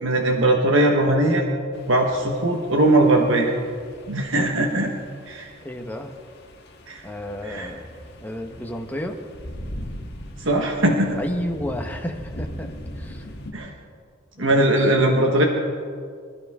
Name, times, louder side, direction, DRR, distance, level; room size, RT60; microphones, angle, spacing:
voice 1, 0.0-1.4 1.9-3.5 4.1-4.9 5.3-5.5 6.9-7.0 7.4-7.7 10.4-11.2 13.5-13.7 14.4-15.4, right 1 dB, 70° right, 1 dB, 1.4 m, -20 dB
sound 1, 1.7-13.5, equal, 55° left, 1.8 m, -40 dB
voice 2, 5.6-6.1 7.0-7.9 8.2-9.2 11.2-13.3 14.4-14.9, equal, 10° left, 3 dB, 1.2 m, -32 dB
24.5 x 14.0 x 3.7 m, 2.1 s
head